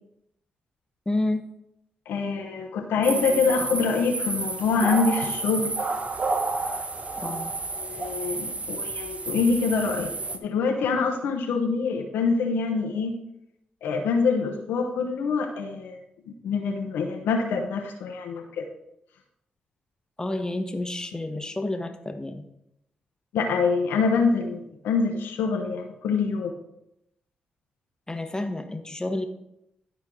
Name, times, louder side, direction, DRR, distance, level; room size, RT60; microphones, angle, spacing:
voice 1, 1.0-1.4 7.2-7.5 20.2-22.4 28.1-29.3, left 2 dB, 20° left, 7 dB, 1.2 m, -30 dB
voice 2, 2.1-5.7 7.3-7.4 7.8-13.2 13.8-16.0 16.4-18.7 23.3-26.5, left 4 dB, 80° left, 2 dB, 0.9 m, -25 dB
sound 1, 3.0-10.4, right 3 dB, 40° right, 0.9 m, -30 dB
11.5 x 4.5 x 3.8 m, 0.82 s
hypercardioid pair, 40°, 4 cm